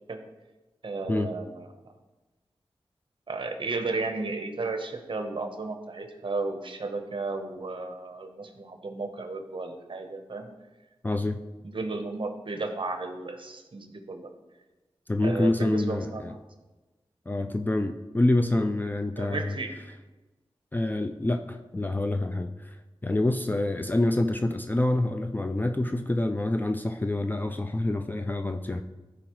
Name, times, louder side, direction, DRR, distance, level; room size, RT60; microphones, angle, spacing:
voice 1, 0.8-1.9 3.3-10.5 11.7-14.3 15.2-16.4 19.2-19.7, right 3 dB, 55° right, 5 dB, 0.9 m, -34 dB
voice 2, 11.0-11.4 15.1-16.3 17.3-19.6 20.7-22.8 23.0-28.8, left 2 dB, 20° left, 6 dB, 0.4 m, -27 dB
13.5 x 4.9 x 3.1 m, 1.1 s
wide cardioid pair, 100°, 10 cm